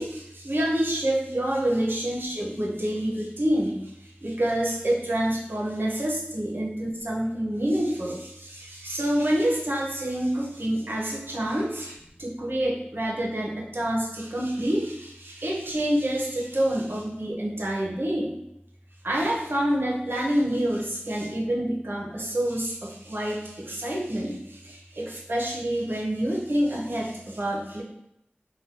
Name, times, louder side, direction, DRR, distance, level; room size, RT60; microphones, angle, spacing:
voice 1, 0.0-18.4 19.0-27.8, right 1 dB, 65° right, -2 dB, 0.7 m, -27 dB
2.6 x 2.2 x 3.6 m, 0.81 s
wide cardioid pair, 45°, 4 cm